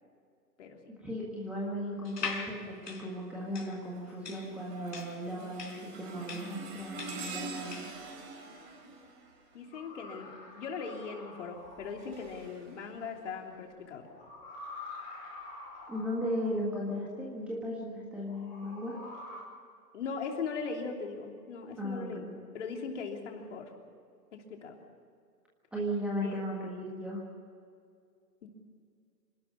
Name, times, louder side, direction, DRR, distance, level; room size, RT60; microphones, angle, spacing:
voice 1, 1.0-7.8 15.9-19.0 21.8-22.3 25.7-27.2, equal, ahead, -4 dB, 1.6 m, -36 dB
sound 1, 2.0-8.0, left 5 dB, 80° left, 4.3 m, -41 dB
sound 2, 2.5-2.9 3.4-10.2 11.4-13.6 14.3-14.5 15.4-15.5, right 3 dB, 30° right, 4.5 m, -46 dB
voice 2, 9.5-14.1 19.9-22.3 22.5-23.7 24.3-24.8 26.2-26.3 28.4-28.5, left 5 dB, 45° left, 2 dB, 3.3 m, -39 dB
sound 3, 9.7-12.3 14.0-16.6 18.2-19.4, left 2 dB, 15° left, 4.8 m, -47 dB
26.5 x 12.5 x 8.8 m, 2.3 s
hypercardioid pair, 150°, 50 cm